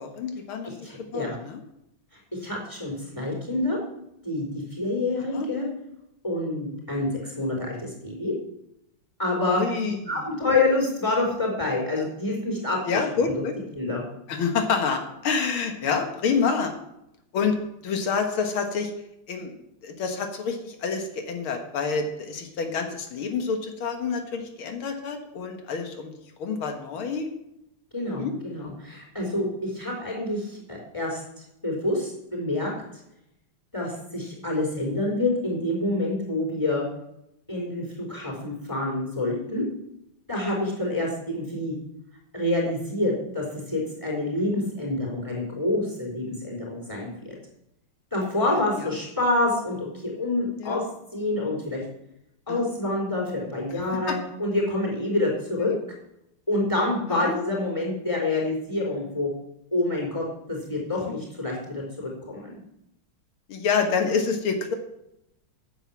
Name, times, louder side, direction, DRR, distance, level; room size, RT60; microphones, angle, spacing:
voice 1, 0.0-1.6 3.1-3.2 5.3-5.5 9.6-10.2 12.8-13.6 14.3-16.7 17.3-17.6 17.8-18.9 19.3-19.5 19.8-26.1 26.4-27.3 28.1-28.3 48.8-48.9 50.6-50.8 52.5-52.6 53.7-53.8 54.1-54.2 55.7-55.8 57.1-57.3 61.0-61.1 63.5-64.7, left 5 dB, 90° left, 5 dB, 2.3 m, -28 dB
voice 2, 0.6-1.4 2.3-3.8 4.2-4.4 4.7-5.7 6.2-8.3 9.2-9.6 10.1-13.0 13.8-14.0 27.9-31.2 31.6-32.7 33.7-36.9 37.5-39.6 40.3-41.7 42.3-47.3 48.1-50.8 51.1-51.8 52.5-55.7 56.5-59.3 59.7-61.8 62.3-62.6, left 2 dB, 10° left, -3 dB, 4.5 m, -27 dB
10.0 x 7.8 x 7.4 m, 0.82 s
omnidirectional pair, 2.2 m